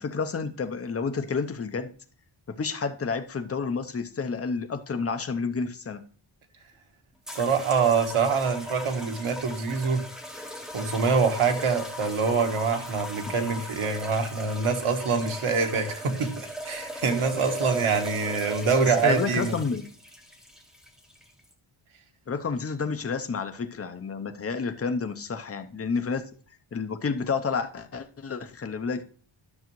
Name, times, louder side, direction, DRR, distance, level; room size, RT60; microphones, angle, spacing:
voice 1, 0.0-1.9 2.5-6.0 13.3-13.4 18.8-19.9 22.3-26.2 26.7-29.0, left 5 dB, 30° left, 0.7 m, -30 dB
sound 1, 7.3-21.5, equal, ahead, 0.9 m, -38 dB
voice 2, 7.3-10.0 10.7-19.5, right 5 dB, 85° right, 1.3 m, -25 dB
11.5 x 6.2 x 3.1 m
wide cardioid pair, 150°, 49 cm